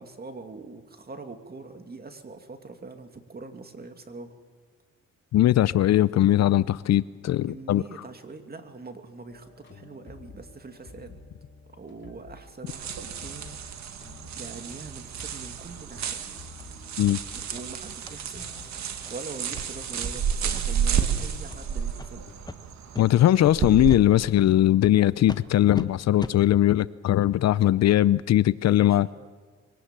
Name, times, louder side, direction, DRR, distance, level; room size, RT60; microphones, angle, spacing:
voice 1, 0.0-4.4 7.5-11.2 11.7-13.6 14.3-16.2 17.5-18.5 19.1-22.2 28.6-29.3, right 3 dB, 30° right, 2.4 m, -43 dB
voice 2, 5.3-7.8 17.0-17.2 23.0-29.1, left 13 dB, 60° left, 0.6 m, -20 dB
sound 1, 9.3-22.3, left 3 dB, 40° left, 3.2 m, -50 dB
sound 2, 12.7-24.0, right 8 dB, 65° right, 1.9 m, -31 dB
Soil Steps, 16.0-16.1 16.6-16.7 17.1-17.2 17.5-17.6 18.0-18.1 18.5-18.7 19.0-19.1 19.5-19.6 20.0-20.2 20.5-20.9 21.4-21.6 22.0-22.1 22.5-22.6 22.9-23.0 23.4-23.5 23.9-24.0 24.4-24.5 24.8-24.9 25.3-25.4 25.7-25.9 26.2-26.4, left 3 dB, 15° left, 1.2 m, -37 dB
23.0 x 18.0 x 7.5 m
cardioid pair, 90°, 30 cm